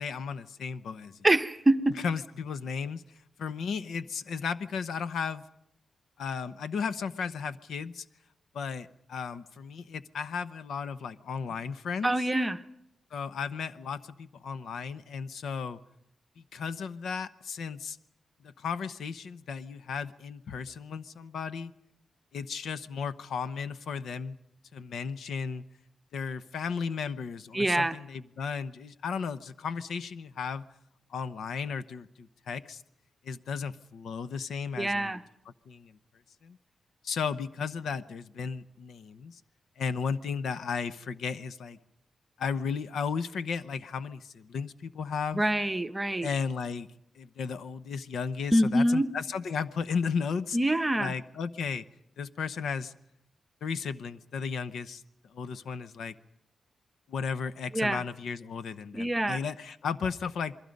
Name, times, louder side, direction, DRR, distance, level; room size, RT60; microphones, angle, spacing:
voice 1, 0.0-1.3 2.0-3.0 3.4-5.4 6.2-8.0 8.5-12.3 13.1-15.8 16.4-18.0 18.4-21.7 22.3-24.4 24.7-25.6 26.1-30.7 31.1-32.8 33.2-35.2 35.7-36.0 36.4-36.6 37.0-39.4 39.8-41.8 42.4-45.4 46.2-46.9 47.1-50.6 51.0-51.8 52.2-52.9 53.6-56.1 57.1-60.6, left 6 dB, 80° left, 13 dB, 0.9 m, -34 dB
voice 2, 1.2-2.0 12.0-12.6 27.5-28.0 34.8-35.2 45.3-46.3 48.5-49.1 50.5-51.1 57.7-58.0 58.9-59.4, right 1 dB, 10° right, 9 dB, 0.8 m, -25 dB
28.0 x 22.0 x 5.3 m, 0.79 s
wide cardioid pair, 170°, 0 cm